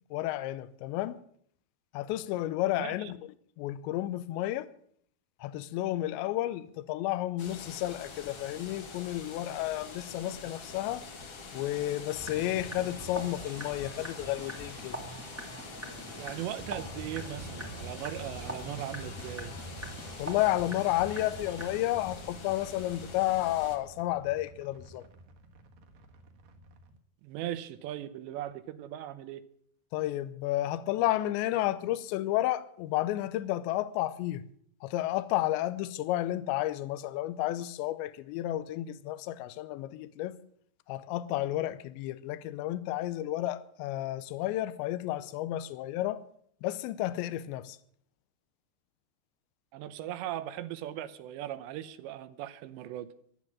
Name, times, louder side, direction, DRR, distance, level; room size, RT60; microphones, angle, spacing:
voice 1, 0.1-1.2 1.9-3.2 3.6-4.7 5.4-11.0 11.5-15.0 20.2-25.0 29.9-34.4 34.8-40.3 40.9-46.2 46.6-47.8, left 15 dB, 85° left, 3.0 m, -31 dB
voice 2, 2.8-3.1 16.2-19.6 27.2-29.4 49.7-53.1, right 12 dB, 80° right, 3.0 m, -39 dB
sound 1, 7.4-23.8, left 4 dB, 45° left, 2.0 m, -46 dB
sound 2, 12.1-21.8, right 1 dB, 20° right, 0.3 m, -44 dB
sound 3, 16.7-27.0, equal, 60° right, 2.8 m, -48 dB
14.5 x 12.0 x 7.4 m
omnidirectional pair, 5.1 m